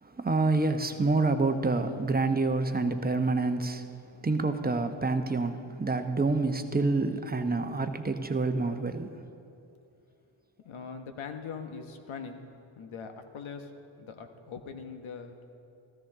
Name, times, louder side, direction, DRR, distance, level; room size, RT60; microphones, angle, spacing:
voice 1, 0.0-3.9 4.2-9.2, right 3 dB, 20° right, 7 dB, 0.9 m, -27 dB
voice 2, 10.6-12.4 12.7-13.7 14.0-15.4, left 6 dB, 70° left, 6 dB, 1.2 m, -41 dB
14.5 x 13.0 x 3.7 m, 2.6 s
cardioid pair, 50°, 50 cm